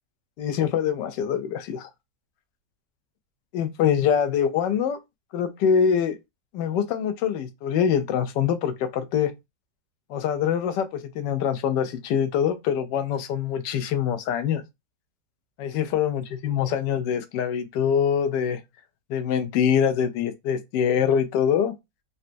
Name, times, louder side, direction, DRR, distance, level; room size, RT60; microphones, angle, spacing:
voice 1, 0.4-1.9 3.5-5.0 5.3-6.2 6.5-9.3 10.1-14.6 15.6-18.6 19.1-21.7, left 8 dB, 90° left, 1.2 m, -24 dB
3.9 x 2.2 x 2.5 m
omnidirectional pair, 1.8 m